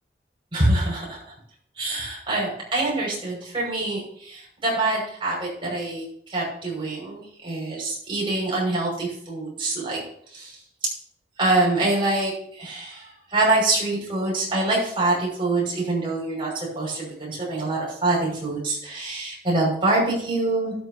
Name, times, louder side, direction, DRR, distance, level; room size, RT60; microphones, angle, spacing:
voice 1, 0.5-1.2 1.8-10.0 10.3-10.5 11.4-20.7, right 2 dB, 30° right, -4 dB, 6.0 m, -25 dB
13.5 x 11.5 x 2.9 m, 0.64 s
head